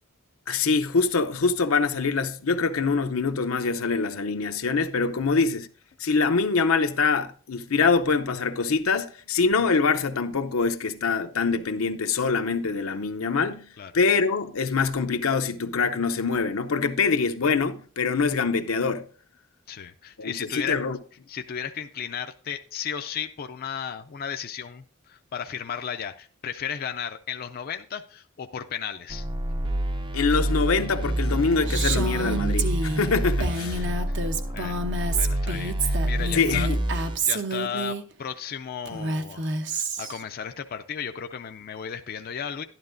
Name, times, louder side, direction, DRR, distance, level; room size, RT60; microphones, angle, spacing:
voice 1, 0.5-5.7 6.0-13.7 13.9-19.0 20.2-21.0 30.1-33.9 36.3-36.8, left 4 dB, 85° left, 0.7 m, -24 dB
voice 2, 19.7-20.8 21.3-29.3 34.1-34.2 34.5-34.8 35.2-36.7 37.2-42.6, left 8 dB, 45° left, 0.4 m, -34 dB
sound 1, 29.1-37.2, right 1 dB, 25° right, 0.5 m, -27 dB
Female speech woman speaking, 31.7-38.0 38.9-40.2, right 3 dB, 60° right, 0.9 m, -29 dB
12.0 x 11.0 x 2.6 m
head